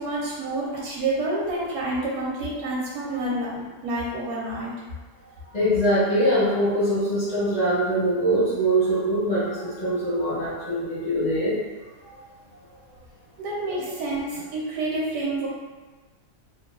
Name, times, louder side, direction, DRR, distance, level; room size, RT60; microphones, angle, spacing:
voice 1, 0.0-4.7 13.4-15.5, right 2 dB, 70° right, -5 dB, 1.0 m, -28 dB
voice 2, 5.5-11.5 12.0-12.1, right 1 dB, 45° left, -11 dB, 0.5 m, -23 dB
2.8 x 2.2 x 2.3 m, 1.3 s
omnidirectional pair, 1.8 m